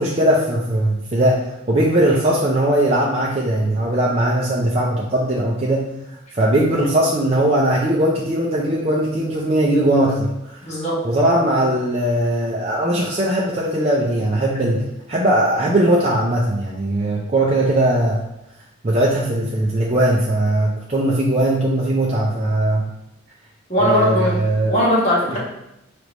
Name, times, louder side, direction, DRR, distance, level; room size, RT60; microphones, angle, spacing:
voice 1, 0.0-5.9 6.3-10.5 11.0-18.2 18.8-22.8 23.8-24.8, right 1 dB, 30° right, -4 dB, 0.5 m, -19 dB
voice 2, 10.6-10.9 23.7-24.3 24.6-25.4, equal, 35° left, -6 dB, 1.6 m, -19 dB
5.1 x 3.3 x 3.0 m, 0.87 s
head